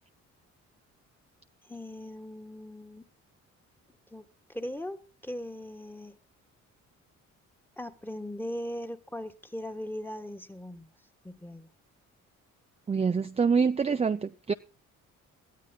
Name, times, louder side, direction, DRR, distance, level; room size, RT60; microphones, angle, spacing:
voice 1, 1.7-3.0 4.1-4.2 4.5-6.2 7.8-10.9 11.2-11.7, left 1 dB, 5° left, 1.5 m, -39 dB
voice 2, 12.9-14.5, right 5 dB, 20° right, 0.6 m, -26 dB
22.5 x 15.0 x 2.4 m
cardioid pair, 90°, 30 cm